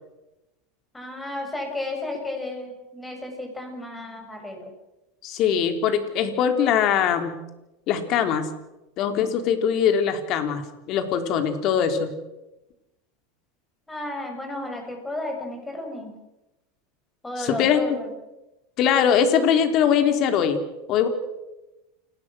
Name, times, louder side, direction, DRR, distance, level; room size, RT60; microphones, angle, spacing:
voice 1, 0.9-4.7 13.9-16.2 17.2-18.1, left 1 dB, 10° left, 3 dB, 7.4 m, -33 dB
voice 2, 5.2-7.4 7.9-8.5 9.0-12.1 17.4-18.0 18.8-20.6 20.9-21.1, left 8 dB, 45° left, 7 dB, 3.6 m, -22 dB
28.5 x 19.0 x 6.4 m, 0.97 s
supercardioid pair, 135°, 0 cm